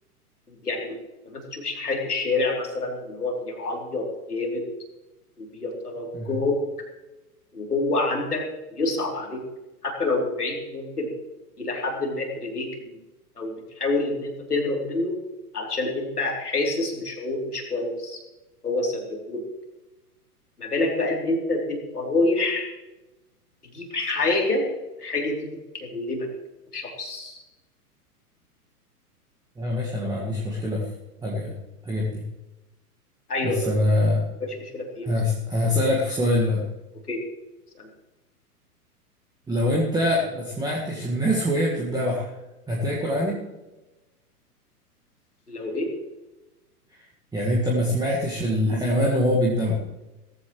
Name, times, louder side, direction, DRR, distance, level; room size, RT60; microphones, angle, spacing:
voice 1, 0.6-1.0 1.3-4.6 5.4-6.6 7.5-8.4 8.7-9.4 9.8-11.1 11.6-13.0 13.4-15.2 15.5-18.2 18.6-19.4 20.6-22.7 23.7-24.7 25.0-26.3 26.7-27.4 33.3-33.6 34.4-35.1 37.1-37.2 37.8-37.9 45.5-45.9, left 2 dB, 75° left, 1 dB, 3.5 m, -27 dB
voice 2, 29.6-30.8 31.2-31.5 31.8-32.2 33.4-34.2 35.0-36.6 39.5-42.3 42.7-43.4 47.3-49.8, left 1 dB, 10° right, -4 dB, 1.8 m, -24 dB
17.5 x 14.5 x 3.2 m, 1.0 s
figure-of-eight pair, 105°, 46 cm